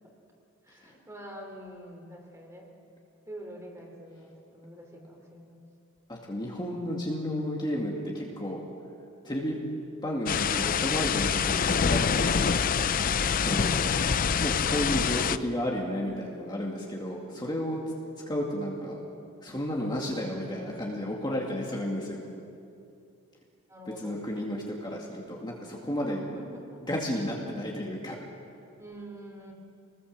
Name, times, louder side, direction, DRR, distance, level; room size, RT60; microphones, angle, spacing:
voice 1, 0.6-2.7 3.2-5.6 23.7-24.2 26.0-26.8 28.8-29.5, right 1 dB, 15° right, 1 dB, 3.4 m, -46 dB
voice 2, 6.1-8.6 9.2-9.6 10.0-12.6 13.4-13.8 14.4-17.8 18.1-19.0 19.4-22.2 24.0-26.2 26.9-28.2, equal, 20° left, -2 dB, 2.3 m, -32 dB
sound 1, 10.3-15.4, left 6 dB, 40° left, 0.5 m, -26 dB
26.5 x 20.0 x 7.6 m, 2.6 s
head